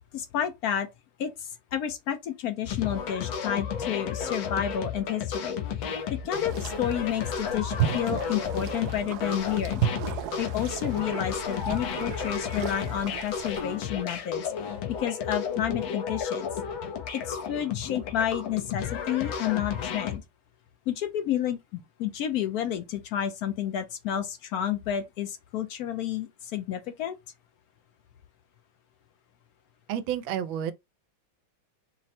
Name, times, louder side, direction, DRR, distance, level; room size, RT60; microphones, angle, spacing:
voice 1, 0.1-0.9 1.2-9.9 10.4-16.5 17.1-20.2 20.9-27.2, left 10 dB, 70° left, 0.9 m, -31 dB
sound 1, 2.6-20.2, left 7 dB, 85° left, 1.6 m, -33 dB
sound 2, 6.3-13.6, right 9 dB, 70° right, 1.0 m, -34 dB
voice 2, 29.9-30.7, right 9 dB, 85° right, 1.4 m, -30 dB
4.8 x 2.1 x 4.2 m
omnidirectional pair, 2.1 m